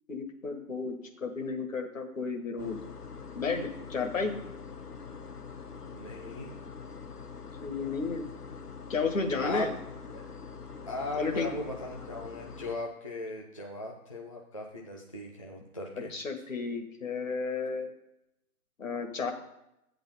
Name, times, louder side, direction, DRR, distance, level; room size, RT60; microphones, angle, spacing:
voice 1, 0.1-2.8 3.3-4.3 7.6-8.3 8.9-9.7 11.2-11.5 16.1-17.9 18.8-19.3, left 4 dB, 60° left, 4 dB, 1.6 m, -32 dB
sound 1, 2.6-12.8, left 5 dB, 85° left, 1.0 m, -44 dB
voice 2, 5.9-6.6 9.4-9.7 10.1-10.2 10.9-16.1, left 2 dB, 25° left, -2 dB, 0.6 m, -38 dB
8.4 x 4.0 x 6.8 m, 0.87 s
figure-of-eight pair, 150°, 45 cm